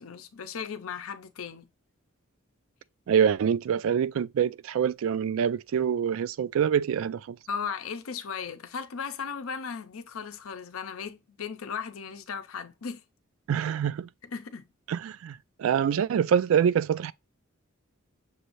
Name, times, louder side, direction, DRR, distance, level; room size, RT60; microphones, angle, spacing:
voice 1, 0.0-1.7 7.5-13.0 14.3-14.7, left 6 dB, 85° left, 0.6 m, -36 dB
voice 2, 3.1-7.4 13.5-14.1 14.9-17.1, right 8 dB, 70° right, 0.3 m, -25 dB
6.4 x 2.6 x 3.0 m
head